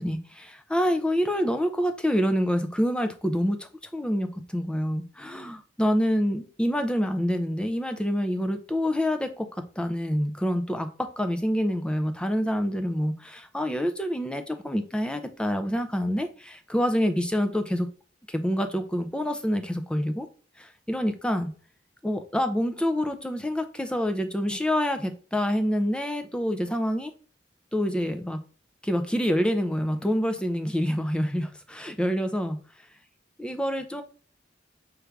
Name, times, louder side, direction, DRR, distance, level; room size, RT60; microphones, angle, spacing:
voice 1, 0.0-9.5 9.8-17.9 18.3-20.3 20.6-21.5 22.0-27.1 27.7-28.4 28.8-32.6 33.4-34.0, equal, 5° left, 0.4 m, -27 dB
4.5 x 2.5 x 3.2 m
head